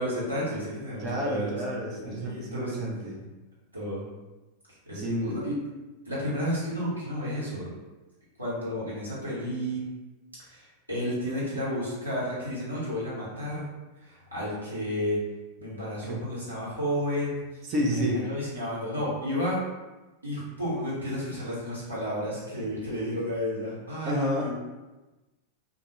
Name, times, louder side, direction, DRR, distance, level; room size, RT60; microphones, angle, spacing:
voice 1, 0.0-1.6 1.9-2.8 3.7-4.1 4.8-5.6 6.0-7.7 8.4-9.9 10.4-13.7 14.0-15.2 15.6-19.6 20.2-24.5, equal, 85° right, -8 dB, 1.1 m, -32 dB
voice 2, 1.0-3.2 4.9-5.3 16.0-16.2 17.6-18.3 24.1-24.5, equal, 35° right, -1 dB, 0.6 m, -30 dB
2.4 x 2.2 x 2.9 m, 1.1 s
figure-of-eight pair, 90°, 0 cm